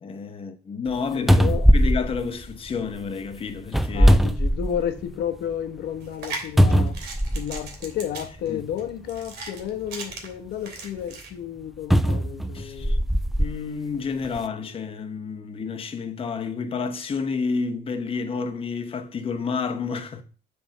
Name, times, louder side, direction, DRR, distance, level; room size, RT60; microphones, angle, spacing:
voice 1, 0.0-1.4 1.7-4.2 8.5-8.7 12.5-13.0 13.4-20.2, left 5 dB, 35° left, 1.0 m, -30 dB
sound 1, 0.9-1.0 1.3-3.0 3.7-5.1 5.5-5.6 6.6-7.7 8.6-8.7 11.9-13.6 14.2-14.4, equal, ahead, 0.4 m, -19 dB
voice 2, 1.1-1.7 3.9-7.0 7.3-13.1, left 9 dB, 75° left, 1.1 m, -32 dB
sound 2, 6.0-11.3, right 3 dB, 70° right, 2.4 m, -38 dB
7.4 x 3.6 x 6.4 m
cardioid pair, 110°, 17 cm